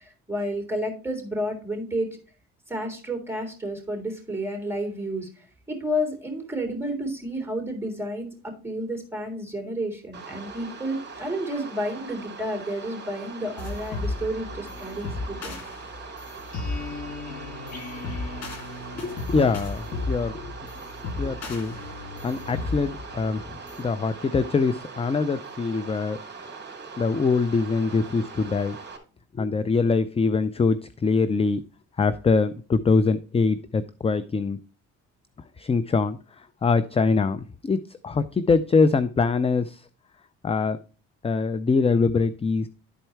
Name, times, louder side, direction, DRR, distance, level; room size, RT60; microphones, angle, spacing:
voice 1, 0.0-2.2 2.7-15.6, equal, 10° right, 4 dB, 3.5 m, -31 dB
Waterfall Kauai, 10.1-29.0, right 4 dB, 35° right, 2.6 m, -41 dB
sound 1, 13.6-23.8, left 3 dB, 65° left, 2.7 m, -35 dB
voice 2, 19.0-20.5 21.2-21.8 22.2-23.4 23.8-26.2 27.0-28.8 29.4-31.6 32.0-34.6 35.6-36.2 36.6-37.8 38.0-39.8 40.4-40.8 41.2-42.7, left 4 dB, 20° left, 13 dB, 0.5 m, -23 dB
11.5 x 4.5 x 4.4 m, 0.34 s
cardioid pair, 90°, 30 cm